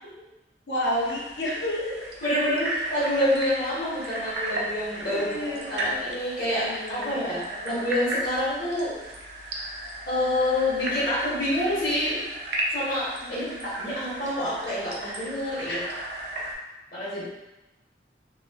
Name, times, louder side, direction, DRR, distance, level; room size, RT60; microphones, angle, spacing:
voice 1, 0.7-1.9 5.1-6.0 6.5-7.2 7.5-7.7 13.2-13.8 15.6-15.8, left 1 dB, 80° left, -5 dB, 0.8 m, -31 dB
sound 1, 0.8-16.5, right 1 dB, 75° right, 0.5 m, -35 dB
voice 2, 2.2-9.0 10.1-12.2 12.7-15.8 16.9-17.2, left 1 dB, 55° left, -10 dB, 0.9 m, -27 dB
2.3 x 2.3 x 3.3 m, 1.0 s
head